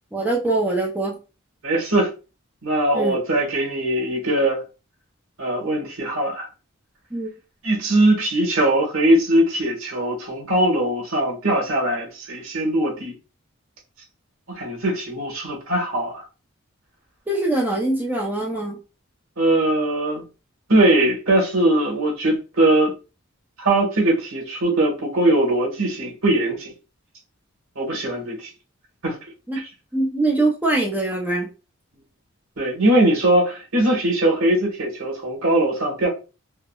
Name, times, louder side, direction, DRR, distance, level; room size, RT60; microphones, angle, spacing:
voice 1, 0.1-1.2 2.9-3.2 7.1-7.3 17.3-18.8 29.5-29.6 29.9-31.5, right 2 dB, 10° right, 0.5 m, -23 dB
voice 2, 1.6-2.1 2.6-4.6 5.4-6.5 7.6-13.1 14.5-16.2 19.4-20.2 20.7-22.9 23.6-26.7 27.7-28.5 29.0-29.2 32.6-36.1, right 1 dB, 85° right, 1.3 m, -20 dB
3.6 x 2.0 x 2.3 m
head